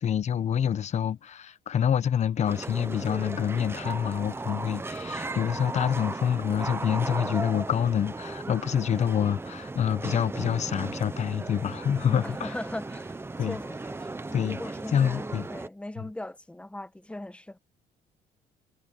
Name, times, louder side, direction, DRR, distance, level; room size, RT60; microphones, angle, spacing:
voice 1, 0.0-12.6 13.4-13.6 14.3-14.6 14.9-15.5 16.0-16.1, left 8 dB, 40° left, 1.0 m, -27 dB
sound 1, 2.5-15.7, right 3 dB, 15° right, 1.0 m, -36 dB
voice 2, 12.2-13.2 13.5-17.6, left 1 dB, 5° left, 1.3 m, -39 dB
cardioid pair, 110°, 17 cm